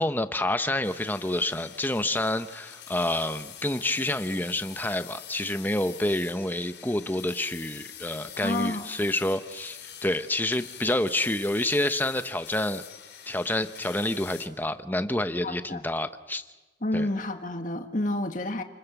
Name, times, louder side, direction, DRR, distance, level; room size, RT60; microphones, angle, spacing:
voice 1, 0.0-12.8 13.3-16.4 16.9-17.1, left 1 dB, 10° left, 10 dB, 0.9 m, -28 dB
sound 1, 0.8-14.5, left 10 dB, 65° left, 3.4 m, -45 dB
voice 2, 8.4-8.9 15.4-15.8 16.8-18.6, left 1 dB, 45° left, 6 dB, 1.9 m, -29 dB
29.5 x 21.0 x 8.3 m, 1.2 s
head